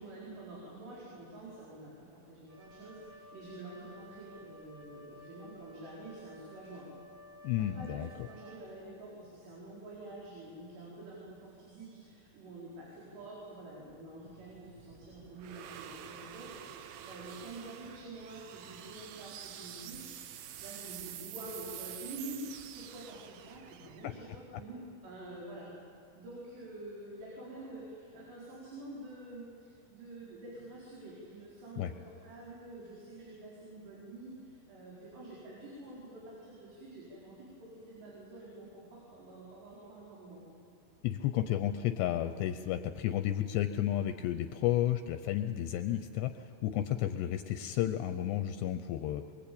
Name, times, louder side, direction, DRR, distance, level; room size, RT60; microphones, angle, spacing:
voice 1, 0.0-6.9 7.6-25.7 26.2-40.4, right 2 dB, 65° right, -6 dB, 6.7 m, -48 dB
Wind instrument woodwind instrument, 2.5-9.0, left 1 dB, 45° right, 3.9 m, -54 dB
voice 2, 7.4-8.1 24.0-24.1 31.8-31.9 41.0-49.3, left 12 dB, 80° left, 9 dB, 2.7 m, -32 dB
sound 1, 13.9-25.1, right 10 dB, 90° right, 3.3 m, -48 dB
23.5 x 23.5 x 8.6 m, 2.3 s
omnidirectional pair, 5.2 m